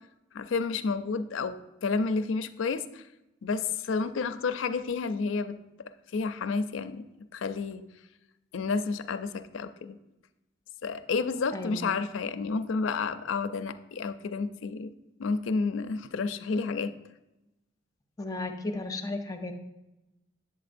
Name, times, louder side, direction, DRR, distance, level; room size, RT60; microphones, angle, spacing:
voice 1, 0.3-3.0 3.4-5.6 6.1-7.0 7.3-7.8 8.5-10.0 10.8-14.9 15.2-16.9, left 4 dB, 70° left, 10 dB, 0.4 m, -30 dB
voice 2, 11.5-12.0 18.2-19.5, left 2 dB, 20° left, 4 dB, 0.5 m, -34 dB
8.2 x 7.3 x 2.5 m, 0.96 s
head